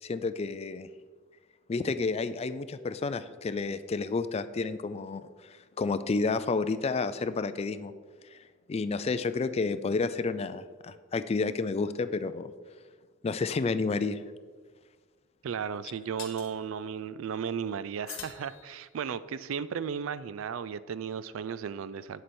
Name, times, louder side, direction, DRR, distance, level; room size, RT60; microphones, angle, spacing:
voice 1, 0.0-0.9 1.7-7.9 8.3-8.4 8.7-12.5 13.2-14.2, left 4 dB, 30° left, 12 dB, 0.3 m, -30 dB
sound 1, 14.2-14.3 16.2-16.5 18.1-19.2, left 9 dB, 80° left, 1.1 m, -45 dB
voice 2, 15.4-22.2, right 7 dB, 75° right, 15 dB, 0.4 m, -35 dB
8.3 x 7.6 x 4.3 m, 1.5 s
head